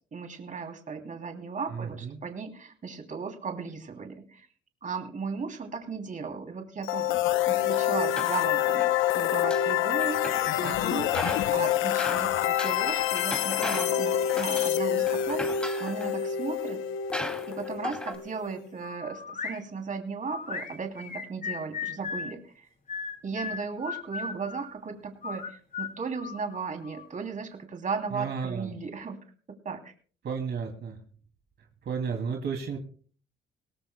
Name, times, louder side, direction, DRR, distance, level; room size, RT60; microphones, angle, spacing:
voice 1, 0.1-4.5 4.8-7.1 7.5-15.4 15.8-16.8 17.5-22.7 23.2-29.2 29.6-29.9, right 5 dB, 40° right, 5 dB, 3.0 m, -36 dB
voice 2, 1.7-2.2 28.1-28.7 30.2-30.9 31.9-32.8, right 6 dB, 60° right, 3 dB, 2.6 m, -32 dB
sound 1, 6.8-18.7, left 11 dB, 85° left, 0.7 m, -27 dB
sound 2, 7.7-8.9 9.3-10.7 11.0-14.0 14.3-14.8 15.1-16.2 16.7-16.8 17.1-18.2, equal, 5° left, 2.5 m, -37 dB
sound 3, 18.8-19.6 20.3-22.3 22.9-24.7 25.2-27.1, left 5 dB, 45° left, 7.2 m, -36 dB
21.5 x 18.0 x 2.2 m, 0.42 s
cardioid pair, 90°, 20 cm